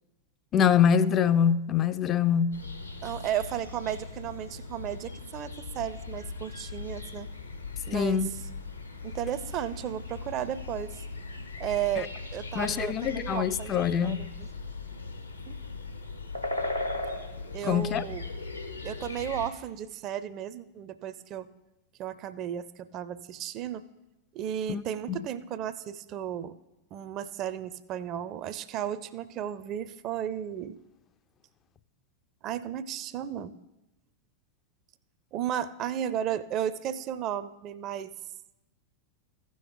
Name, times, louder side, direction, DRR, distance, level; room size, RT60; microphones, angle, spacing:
voice 1, 0.5-2.6 7.9-8.3 12.5-14.2 17.6-18.1 24.7-24.8 25.1-25.2, left 8 dB, 30° left, 0.3 m, -24 dB
sound 1, 2.5-19.5, left 3 dB, 85° left, 0.9 m, -38 dB
voice 2, 3.0-7.3 7.9-8.3 9.0-11.0 11.6-14.5 15.5-15.6 17.5-18.3 18.8-21.5 22.0-23.8 24.3-26.6 26.9-30.8 32.4-33.5 35.3-38.1, right 10 dB, 35° right, 0.4 m, -34 dB
15.0 x 6.3 x 3.8 m
figure-of-eight pair, 90°, 0 cm